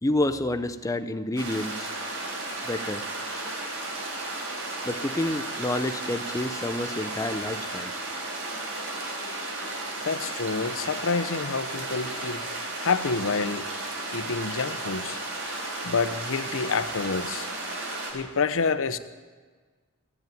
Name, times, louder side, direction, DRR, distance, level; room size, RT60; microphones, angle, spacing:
voice 1, 0.0-1.9 2.6-3.0 4.8-7.9, left 1 dB, 15° left, 9 dB, 0.5 m, -29 dB
sound 1, 1.4-18.1, right 2 dB, 65° right, 3.8 m, -34 dB
voice 2, 10.0-12.4 12.8-13.6 14.1-15.2 15.8-17.5 18.1-19.0, left 4 dB, 65° left, 12 dB, 0.7 m, -28 dB
15.0 x 8.2 x 9.2 m, 1.4 s
head